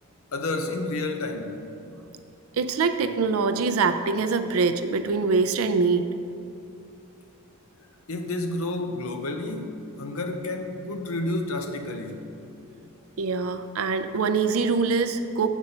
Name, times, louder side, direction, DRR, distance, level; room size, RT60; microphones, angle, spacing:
voice 1, 0.3-1.6 8.1-12.3, left 2 dB, 70° left, 6 dB, 0.7 m, -30 dB
voice 2, 2.5-6.1 13.2-15.5, right 4 dB, 75° right, 9 dB, 0.4 m, -24 dB
7.1 x 4.2 x 6.5 m, 2.7 s
head